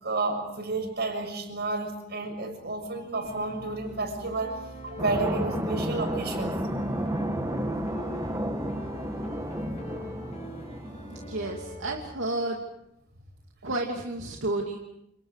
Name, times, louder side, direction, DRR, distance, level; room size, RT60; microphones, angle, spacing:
voice 1, 0.0-6.5, right 3 dB, 55° right, 4 dB, 7.0 m, -31 dB
sound 1, 3.2-12.0, equal, 35° left, 5.8 m, -42 dB
sound 2, 5.0-11.4, right 1 dB, 15° right, 1.9 m, -32 dB
voice 2, 11.1-12.6 13.6-14.8, right 2 dB, 70° right, 1 dB, 2.8 m, -31 dB
29.5 x 28.5 x 5.0 m, 0.81 s
head